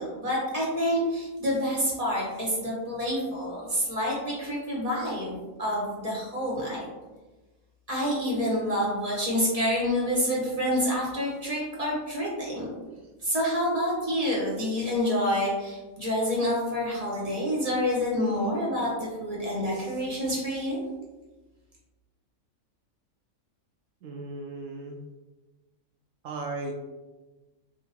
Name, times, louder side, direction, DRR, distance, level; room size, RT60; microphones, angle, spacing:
voice 1, 0.0-6.9 7.9-12.7 13.2-20.8, equal, 25° right, -5 dB, 1.4 m, -28 dB
voice 2, 24.0-25.0 26.2-26.7, right 3 dB, 70° right, 2 dB, 0.9 m, -36 dB
3.8 x 2.7 x 4.3 m, 1.2 s
omnidirectional pair, 1.5 m